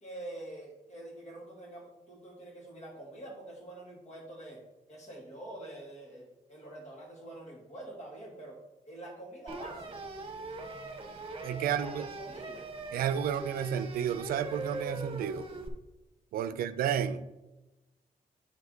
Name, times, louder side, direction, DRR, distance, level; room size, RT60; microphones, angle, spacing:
voice 1, 0.0-4.6 4.9-8.6 8.8-9.9 11.6-12.7 16.5-16.6, right 1 dB, 50° left, -1 dB, 2.6 m, -46 dB
sound 1, 9.5-15.7, right 2 dB, 40° right, 1.1 m, -41 dB
voice 2, 11.4-12.1 12.9-15.5 16.3-17.3, right 9 dB, 85° right, 12 dB, 0.4 m, -31 dB
8.5 x 4.9 x 4.0 m, 1.0 s
cardioid pair, 70°, 15 cm